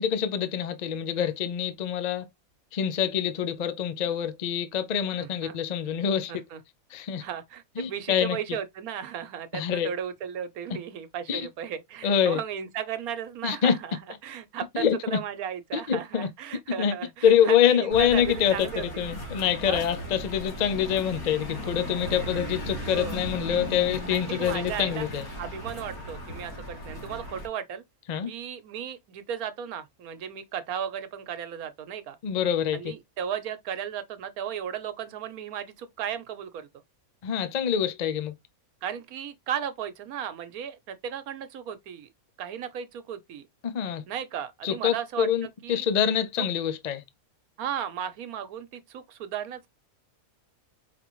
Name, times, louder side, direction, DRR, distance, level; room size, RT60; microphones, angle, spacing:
voice 1, 0.0-2.3 2.7-6.3 6.9-7.2 7.8-8.4 9.5-9.9 11.3-11.5 12.0-12.4 13.4-13.7 14.7-15.2 15.7-16.3 16.8-16.9 17.2-18.7 19.0-25.3 28.1-28.3 32.2-32.9 37.2-38.3 43.6-44.0 44.6-47.0, left 8 dB, 55° left, 0.5 m, -25 dB
voice 2, 5.2-5.6 6.3-6.6 7.2-19.0 19.7-19.8 22.2-22.3 22.9-23.2 24.1-25.1 25.4-27.8 28.3-32.2 32.7-36.7 38.8-42.1 42.4-43.4 44.1-45.8 46.4-46.5 47.6-49.7, right 9 dB, 80° right, 1.2 m, -35 dB
sound 1, 17.9-27.5, equal, 85° left, 2.1 m, -37 dB
4.8 x 3.4 x 3.0 m
omnidirectional pair, 1.5 m